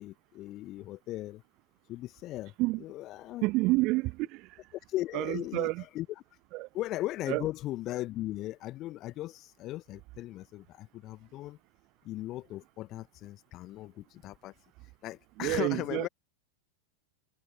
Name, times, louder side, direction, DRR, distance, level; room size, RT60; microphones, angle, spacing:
voice 1, 0.0-1.4 1.9-3.8 4.9-6.2 6.7-11.6 12.0-14.5 15.0-16.1, left 16 dB, 35° left, 1.6 m, -38 dB
voice 2, 3.4-4.5 5.1-5.8 6.5-6.7 7.3-7.4 15.4-16.0, right 22 dB, 40° right, 0.4 m, -29 dB
figure-of-eight pair, 90°, 0 cm